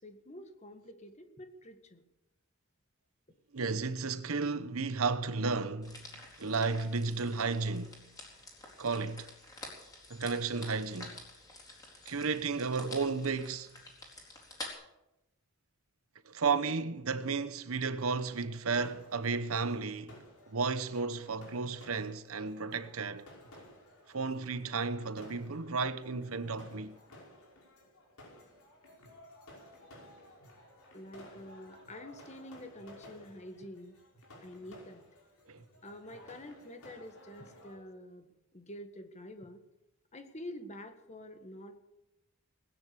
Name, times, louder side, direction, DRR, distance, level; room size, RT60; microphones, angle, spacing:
voice 1, 0.0-2.0 30.9-34.0 34.4-35.0 35.8-39.6 40.1-41.8, left 1 dB, 30° left, 1.6 m, -48 dB
voice 2, 3.5-8.0 8.8-9.3 10.1-11.2 12.1-13.7 16.2-23.3 24.1-27.0 35.5-35.6, right 4 dB, 75° right, 1.0 m, -33 dB
sound 1, 5.8-14.7, left 2 dB, 15° left, 4.0 m, -49 dB
sound 2, 18.0-37.8, left 1 dB, 85° left, 5.7 m, -56 dB
19.5 x 9.9 x 6.9 m
head